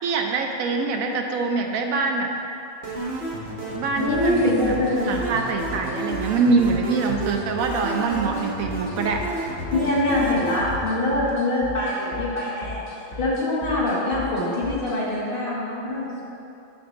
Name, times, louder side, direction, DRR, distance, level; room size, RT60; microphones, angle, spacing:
voice 1, 0.0-2.3 3.7-4.7 5.1-9.2, right 4 dB, 80° right, 3 dB, 1.1 m, -24 dB
sound 1, 2.8-10.8, right 2 dB, 50° right, 1.0 m, -31 dB
voice 2, 4.0-5.1 9.7-12.8 13.2-16.2, left 1 dB, 40° left, -6 dB, 1.5 m, -24 dB
sound 2, 4.1-15.0, left 2 dB, 75° left, 1.8 m, -38 dB
6.8 x 3.9 x 6.5 m, 2.8 s
omnidirectional pair, 1.4 m